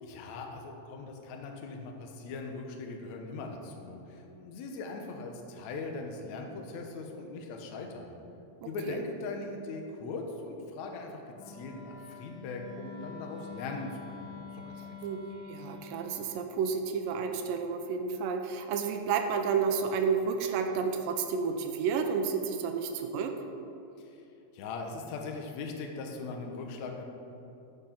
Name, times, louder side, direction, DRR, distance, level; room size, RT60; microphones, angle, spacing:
voice 1, 0.0-8.2 8.7-15.2 24.0-24.1 24.5-27.1, left 3 dB, 70° left, 2 dB, 1.8 m, -40 dB
voice 2, 8.6-9.0 15.0-23.4, right 6 dB, 80° right, 5 dB, 2.0 m, -31 dB
Wind instrument woodwind instrument, 11.4-16.2, left 5 dB, 85° left, 3.7 m, -46 dB
13.5 x 6.6 x 5.9 m, 2.8 s
omnidirectional pair, 4.7 m